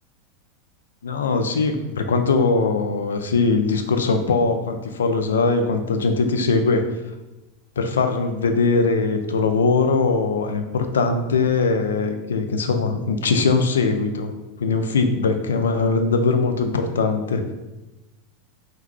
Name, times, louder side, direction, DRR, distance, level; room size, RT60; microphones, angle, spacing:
voice 1, 1.0-6.8 7.8-14.3 14.6-17.5, left 4 dB, 85° left, 7 dB, 0.3 m, -21 dB
3.6 x 2.3 x 3.0 m, 1.0 s
hypercardioid pair, 100°, 0 cm